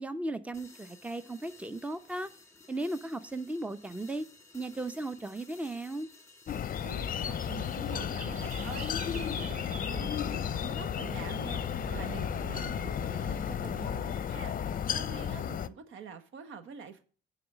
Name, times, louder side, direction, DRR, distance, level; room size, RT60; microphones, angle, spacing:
voice 1, 0.0-2.3 2.7-4.3 4.5-6.1, right 2 dB, 5° right, 0.7 m, -36 dB
sound 1, 0.5-10.4, left 3 dB, 15° left, 1.8 m, -57 dB
sound 2, 6.5-15.7, left 8 dB, 45° left, 0.6 m, -33 dB
voice 2, 6.8-17.0, right 6 dB, 80° right, 1.3 m, -46 dB
sound 3, 7.4-13.9, right 4 dB, 40° right, 1.2 m, -45 dB
9.5 x 4.1 x 7.2 m
cardioid pair, 90°, 20 cm